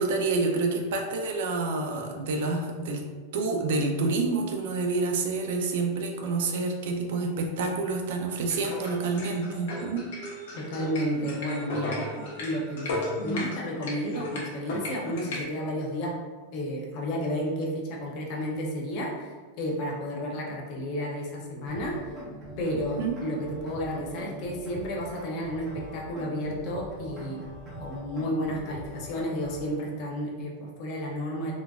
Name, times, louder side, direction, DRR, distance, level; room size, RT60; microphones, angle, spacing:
voice 1, 0.0-3.1 3.3-10.1 22.7-23.1, right 3 dB, 65° right, 2 dB, 0.5 m, -28 dB
sound 1, 8.4-15.4, left 2 dB, 75° left, 0.9 m, -35 dB
voice 2, 10.5-12.0 12.4-16.2 16.5-22.0 22.6-27.4 27.8-31.5, equal, 40° left, -1 dB, 0.6 m, -32 dB
sound 2, 21.7-29.7, right 1 dB, 25° right, 0.7 m, -42 dB
3.7 x 2.3 x 2.4 m, 1.4 s
supercardioid pair, 160°, 0 cm